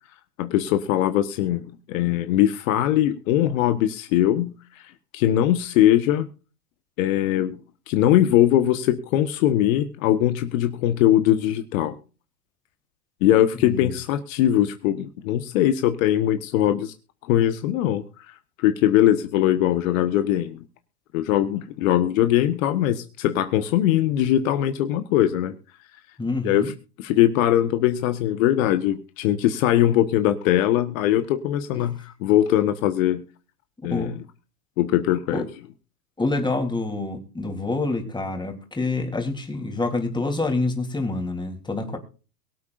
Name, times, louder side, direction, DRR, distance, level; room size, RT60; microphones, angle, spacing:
voice 1, 0.4-4.8 5.1-6.3 7.0-7.6 7.9-11.9 13.2-16.9 17.3-18.0 18.6-20.6 21.1-25.5 26.4-26.6 27.0-33.2 33.8-34.1 34.8-35.4, left 12 dB, 60° left, 9 dB, 1.4 m, -21 dB
voice 2, 13.6-14.0 26.2-26.7 33.9-34.2 35.3-35.4 36.2-42.0, left 2 dB, 10° left, 4 dB, 3.5 m, -27 dB
23.0 x 8.4 x 2.6 m, 0.34 s
hypercardioid pair, 100°, 46 cm